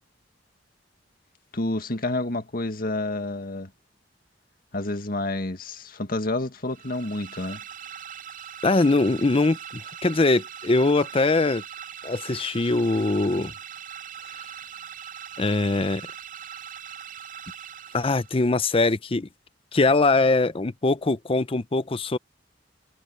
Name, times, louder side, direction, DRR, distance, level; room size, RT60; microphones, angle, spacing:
voice 1, 1.5-3.7 4.7-7.6, left 2 dB, 55° left, 1.9 m, -29 dB
sound 1, 6.7-18.5, right 8 dB, 50° right, 4.9 m, -41 dB
voice 2, 8.6-11.6 12.0-13.5 15.4-16.0 17.9-19.3 19.7-22.2, left 3 dB, 30° left, 0.6 m, -22 dB
head